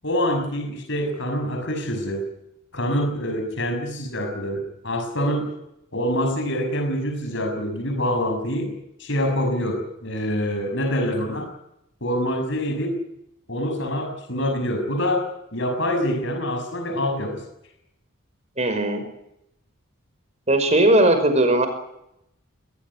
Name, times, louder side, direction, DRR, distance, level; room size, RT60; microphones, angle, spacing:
voice 1, 0.0-2.2 2.7-5.5 5.9-8.7 9.0-11.5 12.0-13.0 13.5-17.4, equal, 60° left, 5 dB, 6.4 m, -25 dB
voice 2, 18.6-19.0 20.5-21.7, right 1 dB, 30° right, 8 dB, 5.4 m, -18 dB
21.0 x 19.5 x 9.8 m, 0.81 s
head